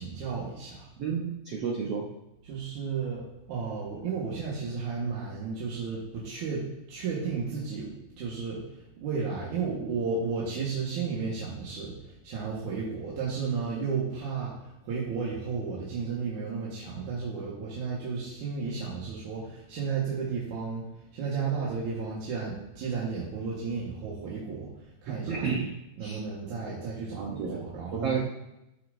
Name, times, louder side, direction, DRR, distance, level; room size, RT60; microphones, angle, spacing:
voice 1, 0.0-0.9 2.4-8.6 9.0-11.9 12.2-14.5 14.8-20.8 21.1-25.5 26.0-28.2, right 5 dB, 60° right, -7 dB, 2.8 m, -33 dB
voice 2, 1.0-2.0 25.1-25.7 26.0-26.2 27.2-27.6 28.0-28.2, right 6 dB, 75° right, -3 dB, 1.4 m, -31 dB
15.0 x 6.7 x 2.7 m, 0.90 s
omnidirectional pair, 4.3 m